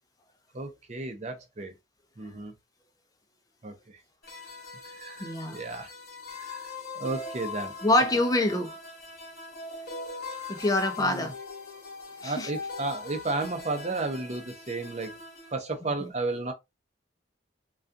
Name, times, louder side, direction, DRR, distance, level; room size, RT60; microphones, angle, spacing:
voice 1, 0.5-1.7 2.2-2.5 3.6-4.0 4.8-5.9 6.3-7.7 10.4-10.6 11.0-11.3 12.2-15.2 15.5-16.5, right 3 dB, 35° right, 0.5 m, -33 dB
sound 1, 4.2-15.5, left 3 dB, 55° left, 0.9 m, -41 dB
voice 2, 5.2-5.6 7.8-8.7 10.5-11.3 12.2-12.5 15.8-16.1, left 1 dB, 20° left, 0.4 m, -26 dB
2.3 x 2.3 x 2.5 m
head